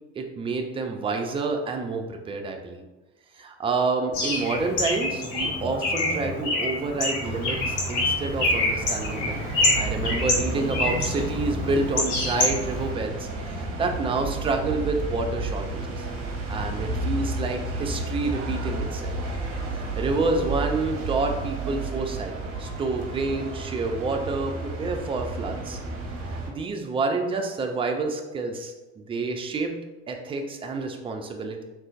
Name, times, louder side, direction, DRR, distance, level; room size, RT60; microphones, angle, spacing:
voice 1, 0.2-2.8 3.4-9.4 9.8-16.1 16.5-19.2 19.8-22.3 22.6-25.8 26.5-29.7 30.1-31.6, right 3 dB, 15° right, 4 dB, 0.3 m, -28 dB
Bird, 4.1-12.9, left 2 dB, 60° left, 0.9 m, -27 dB
sound 1, 7.2-26.5, right 2 dB, 40° right, 0.8 m, -32 dB
3.6 x 2.6 x 2.4 m, 1.1 s
hypercardioid pair, 65°, 35 cm